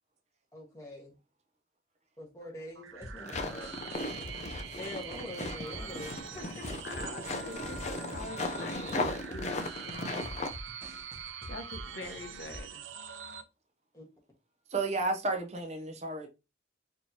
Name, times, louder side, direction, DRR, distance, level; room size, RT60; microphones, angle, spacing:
voice 1, 0.5-1.2 2.2-3.9 4.8-6.7 13.9-14.0, left 1 dB, 15° left, 1.3 m, -45 dB
sound 1, 2.8-13.4, right 7 dB, 90° right, 0.5 m, -44 dB
sound 2, 3.0-12.6, left 1 dB, 15° right, 1.0 m, -47 dB
sound 3, 3.2-10.5, left 2 dB, 35° left, 0.4 m, -37 dB
voice 2, 6.8-10.3 11.5-12.8, left 2 dB, 65° left, 0.9 m, -44 dB
voice 3, 14.7-16.3, right 2 dB, 35° right, 0.6 m, -32 dB
4.6 x 2.8 x 2.7 m
head